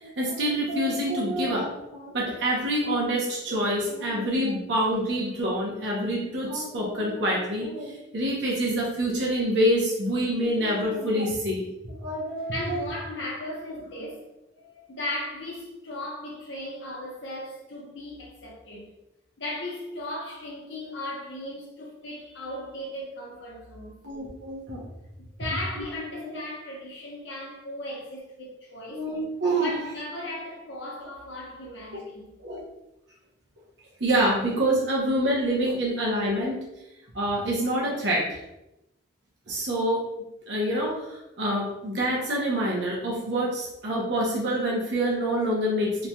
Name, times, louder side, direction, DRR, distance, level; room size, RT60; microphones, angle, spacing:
voice 1, 0.0-12.8 24.0-24.8 25.8-25.9 26.2-26.4 28.9-29.7 32.4-32.6 34.0-36.6 37.1-38.3 39.5-40.0 40.5-46.1, right 1 dB, 65° right, 0.7 m, -26 dB
voice 2, 12.5-14.3 14.6-18.9 19.4-24.0 25.2-29.0 29.5-32.4, left 1 dB, 75° left, 0.9 m, -37 dB
3.1 x 2.6 x 2.2 m
head